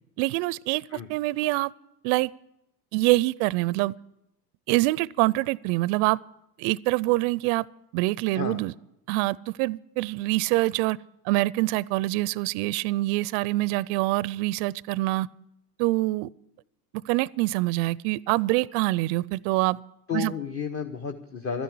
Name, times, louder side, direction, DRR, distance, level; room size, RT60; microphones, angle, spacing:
voice 1, 0.2-1.7 2.0-2.3 2.9-3.9 4.7-6.2 6.6-7.7 7.9-8.7 9.1-11.0 11.2-15.3 15.8-16.3 17.0-19.8 20.1-20.3, right 20 dB, 50° right, 0.5 m, -25 dB
voice 2, 20.1-21.6, left 6 dB, 30° left, 1.1 m, -32 dB
12.5 x 10.5 x 8.5 m
hypercardioid pair, 85°, 49 cm